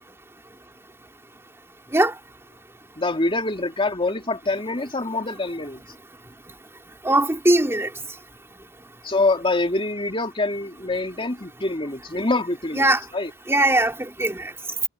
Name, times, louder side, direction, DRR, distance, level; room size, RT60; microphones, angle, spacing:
voice 1, 3.0-5.8 9.0-12.9 13.1-13.3, left 2 dB, 25° left, 3.3 m, -25 dB
voice 2, 7.0-7.9 12.8-13.0 13.5-14.5, right 1 dB, 15° right, 2.4 m, -20 dB
head